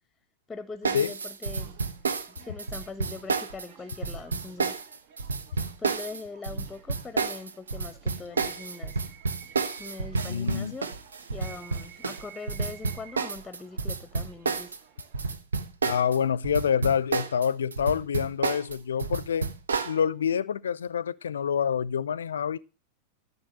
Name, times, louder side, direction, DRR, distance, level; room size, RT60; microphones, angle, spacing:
voice 1, 0.5-1.8 2.4-4.8 5.8-9.1 9.8-10.9 11.3-14.7, left 4 dB, 15° left, 0.9 m, -42 dB
sound 1, 0.8-16.2 16.4-20.0, right 4 dB, 70° right, 1.0 m, -30 dB
sound 2, 1.5-15.4, right 8 dB, 55° right, 2.0 m, -54 dB
voice 2, 10.2-10.8 15.8-19.5 19.8-22.6, left 7 dB, 65° left, 0.6 m, -27 dB
13.5 x 6.9 x 7.6 m
figure-of-eight pair, 90°, 0 cm